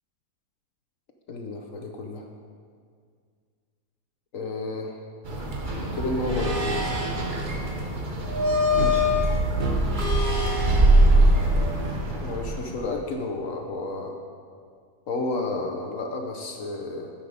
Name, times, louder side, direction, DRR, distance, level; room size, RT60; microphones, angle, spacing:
voice 1, 1.3-2.3 4.3-5.0 5.7-7.0 12.2-14.2 15.1-17.1, left 2 dB, 60° left, 2 dB, 0.9 m, -31 dB
sound 1, 5.2-12.8, right 1 dB, 35° right, 0.8 m, -22 dB
9.7 x 8.0 x 5.1 m, 2.1 s
omnidirectional pair, 2.0 m